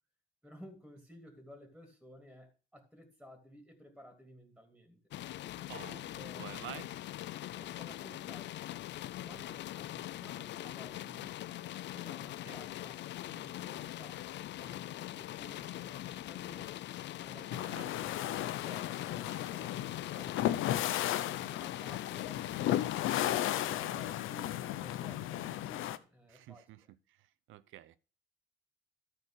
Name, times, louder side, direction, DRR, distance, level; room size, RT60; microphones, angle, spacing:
voice 1, 0.4-5.0 5.9-6.5 7.6-8.6 9.2-16.8 23.4-26.7, equal, ahead, 3.0 m, -55 dB
sound 1, 5.1-23.0, left 14 dB, 65° left, 0.4 m, -42 dB
voice 2, 5.7-6.9 12.4-12.6 17.5-17.9 26.3-28.0, right 14 dB, 90° right, 0.7 m, -50 dB
sound 2, 17.5-26.0, left 13 dB, 85° left, 0.8 m, -34 dB
12.5 x 4.9 x 6.5 m
cardioid pair, 90°, 20 cm